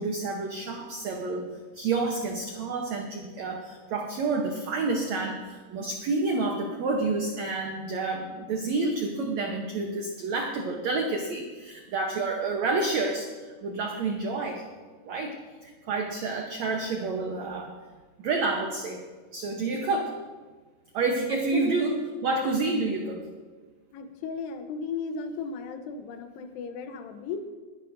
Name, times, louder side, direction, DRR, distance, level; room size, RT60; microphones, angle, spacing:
voice 1, 0.0-14.6 15.0-15.3 15.6-17.8 18.2-19.0 19.3-20.1 20.9-22.0 22.2-23.2, right 3 dB, 85° right, 2 dB, 1.5 m, -29 dB
voice 2, 23.9-27.5, left 5 dB, 85° left, 7 dB, 3.0 m, -35 dB
21.0 x 11.0 x 2.6 m, 1.4 s
omnidirectional pair, 4.6 m